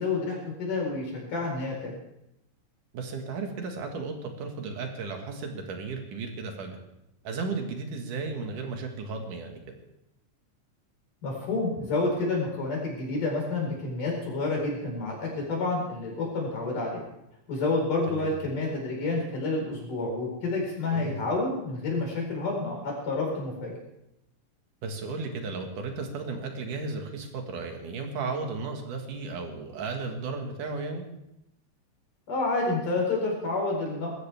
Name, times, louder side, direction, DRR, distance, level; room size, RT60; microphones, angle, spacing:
voice 1, 0.0-1.9 11.2-17.0 17.5-23.7 32.3-34.1, left 3 dB, 85° left, -1 dB, 6.3 m, -29 dB
voice 2, 2.9-6.8 7.2-9.8 18.1-18.3 20.9-21.2 24.8-31.0, right 4 dB, 85° right, 3 dB, 3.4 m, -34 dB
20.5 x 14.5 x 3.5 m, 0.85 s
omnidirectional pair, 3.6 m